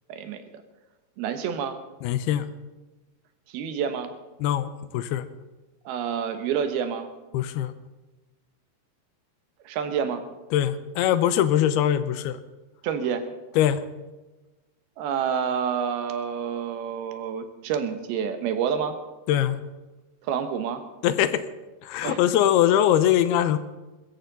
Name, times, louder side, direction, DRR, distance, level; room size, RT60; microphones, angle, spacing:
voice 1, 0.1-0.6 1.2-1.8 3.5-4.1 5.9-7.1 9.7-10.2 12.8-13.2 15.0-19.0 20.3-20.8 22.0-22.2, right 7 dB, 80° right, 8 dB, 3.1 m, -28 dB
voice 2, 2.0-2.5 4.4-5.3 7.3-7.7 10.5-12.4 13.6-13.8 19.3-19.6 21.0-21.4 21.8-23.6, left 11 dB, 85° left, 12 dB, 2.8 m, -22 dB
22.0 x 14.0 x 4.0 m, 1.2 s
omnidirectional pair, 4.4 m